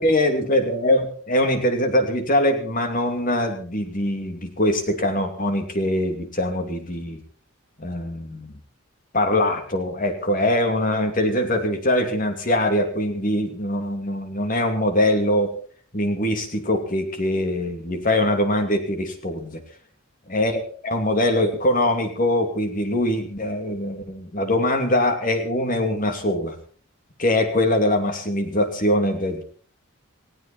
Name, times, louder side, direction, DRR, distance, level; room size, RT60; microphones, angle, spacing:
voice 1, 0.0-7.2 7.8-8.6 9.1-15.5 15.9-19.6 20.3-26.6 27.2-29.4, left 1 dB, 40° left, 6 dB, 2.7 m, -22 dB
19.5 x 16.5 x 4.3 m, 0.43 s
head